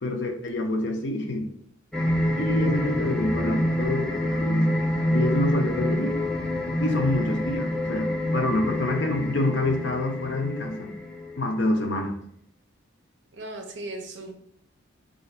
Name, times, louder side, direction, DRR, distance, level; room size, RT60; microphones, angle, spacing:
voice 1, 0.0-1.5 2.4-4.8 5.1-6.1 6.6-10.9 11.4-12.1, left 2 dB, 60° left, 3 dB, 0.6 m, -27 dB
sound 1, 1.9-11.7, equal, 5° left, 0.3 m, -27 dB
voice 2, 13.3-14.3, right 2 dB, 60° right, 3 dB, 0.6 m, -37 dB
2.5 x 2.4 x 4.1 m, 0.68 s
head